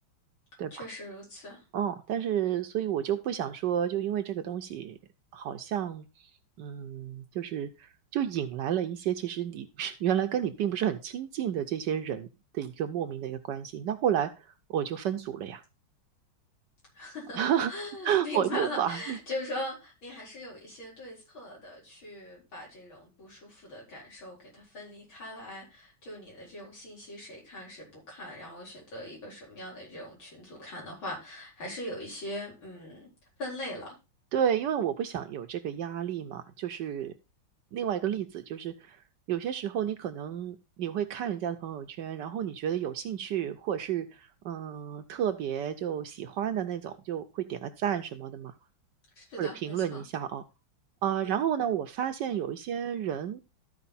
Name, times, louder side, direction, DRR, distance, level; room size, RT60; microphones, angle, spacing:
voice 1, 0.7-1.6 16.9-17.4 17.7-33.1 33.4-33.9 49.2-50.0 51.2-51.4, left 1 dB, 75° left, 5.1 m, -40 dB
voice 2, 1.7-5.0 5.3-6.1 6.6-12.3 12.5-15.6 17.4-17.7 18.0-19.2 34.3-37.1 37.7-39.0 39.3-48.5 49.4-50.4 51.0-53.5, right 9 dB, 70° right, 1.2 m, -31 dB
13.0 x 4.7 x 4.1 m
omnidirectional pair, 2.2 m